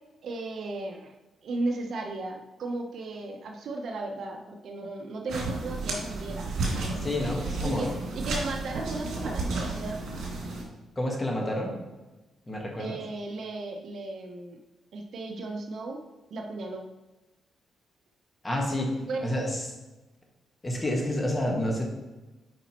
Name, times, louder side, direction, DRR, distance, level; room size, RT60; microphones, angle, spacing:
voice 1, 0.2-1.1 1.4-6.5 7.6-10.0 12.8-14.6 14.9-16.0 16.3-16.9 19.1-19.3, right 2 dB, 60° right, 2 dB, 0.8 m, -35 dB
sound 1, 5.3-10.6, right 3 dB, 75° right, 2.3 m, -32 dB
voice 2, 7.0-7.9 11.0-11.8 12.5-13.0 18.4-19.0 19.2-19.6 20.6-21.8, left 1 dB, 15° left, 0 dB, 1.4 m, -29 dB
8.6 x 5.1 x 3.0 m, 1.1 s
cardioid pair, 135°, 0 cm